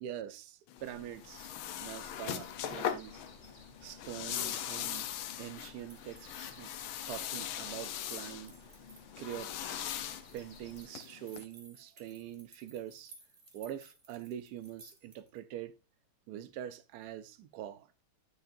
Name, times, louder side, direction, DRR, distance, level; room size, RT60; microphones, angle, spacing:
voice 1, 0.0-1.5 1.8-3.2 3.8-5.1 5.4-6.7 7.1-8.5 9.2-10.1 10.3-13.1 13.5-15.7 16.3-18.0, right 11 dB, 75° right, 0.9 m, -44 dB
sound 1, 0.7-11.4, left 10 dB, 80° left, 1.5 m, -40 dB
sound 2, 0.8-10.8, left 2 dB, 35° left, 2.4 m, -58 dB
sound 3, 5.8-15.4, right 3 dB, 35° right, 1.0 m, -59 dB
9.8 x 6.4 x 2.6 m
omnidirectional pair, 2.3 m